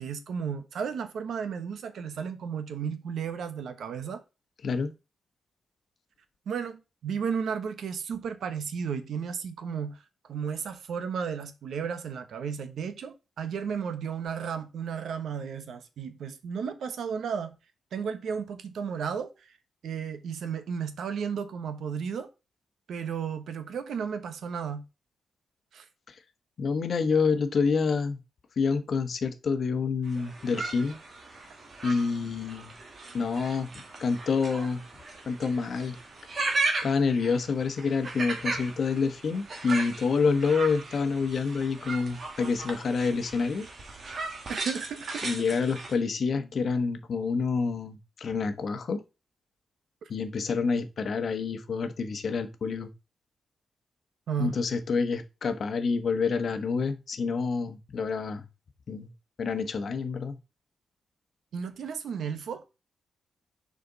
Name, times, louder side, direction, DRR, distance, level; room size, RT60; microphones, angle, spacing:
voice 1, 0.0-4.2 6.5-10.0 10.2-17.6 17.9-19.5 19.8-22.3 22.9-24.8 25.7-25.8 44.5-45.4 50.0-50.1 54.3-54.6 61.5-62.6, right 7 dB, 75° right, 1.1 m, -33 dB
voice 2, 26.6-28.2 28.6-31.0 31.8-32.8 33.1-33.7 34.0-34.8 35.3-36.0 36.8-43.7 45.2-49.0 50.1-52.9 54.4-58.4 58.9-59.1 59.4-60.4, left 5 dB, 50° left, 1.1 m, -28 dB
sound 1, 30.1-45.9, right 3 dB, 35° right, 1.9 m, -36 dB
6.7 x 5.1 x 3.9 m
wide cardioid pair, 160°, 0 cm